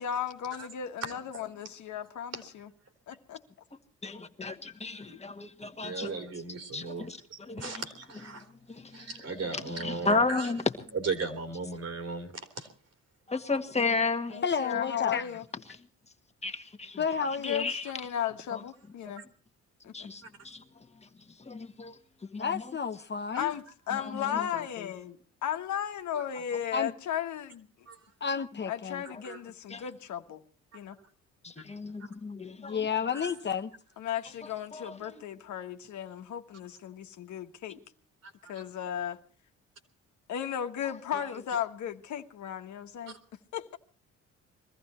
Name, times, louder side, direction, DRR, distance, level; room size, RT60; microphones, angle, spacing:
voice 1, 0.0-2.7 3.1-3.4 14.3-15.4 17.4-19.2 19.8-20.1 23.4-27.7 28.7-30.4 30.7-31.0 34.0-37.8 38.5-39.2 40.3-43.1 43.5-43.8, left 9 dB, 70° left, 1.4 m, -35 dB
voice 2, 4.0-6.1 6.7-7.7 8.7-9.0 9.5-10.6 13.3-14.4 16.4-17.0 17.4-17.8 18.5-18.6 19.9-20.6 21.5-21.9 22.3-22.6 23.9-24.1 29.1-29.2 29.7-29.8 31.4-32.8 34.7-35.2 37.7-37.8, left 3 dB, 20° left, 1.6 m, -33 dB
voice 3, 5.8-8.4 8.9-10.5 10.9-12.7 19.2-19.3 20.2-20.3 23.3-23.5 26.2-26.3 27.9-28.0 29.0-29.4 31.0-31.1 31.6-31.7 33.1-33.3 38.2-38.6 43.1-43.2, right 4 dB, 55° right, 3.5 m, -37 dB
voice 4, 14.4-15.3 17.0-17.7 22.4-23.5 24.3-24.9 26.7-26.9 28.2-29.0 32.6-33.7, left 6 dB, 35° left, 0.9 m, -31 dB
22.0 x 14.5 x 4.4 m
cardioid pair, 90°, 30 cm